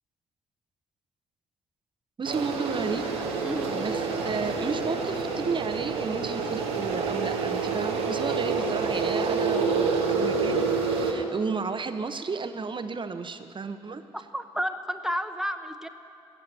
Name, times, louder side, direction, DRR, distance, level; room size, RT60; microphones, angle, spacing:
voice 1, 2.2-3.1 3.7-14.0, right 4 dB, 35° right, 9 dB, 1.0 m, -33 dB
sound 1, 2.2-11.1, right 4 dB, 85° right, 1.3 m, -28 dB
voice 2, 3.4-3.7 14.1-15.9, equal, 5° right, 8 dB, 1.0 m, -31 dB
14.5 x 7.5 x 8.7 m, 2.8 s
hypercardioid pair, 45°, 14 cm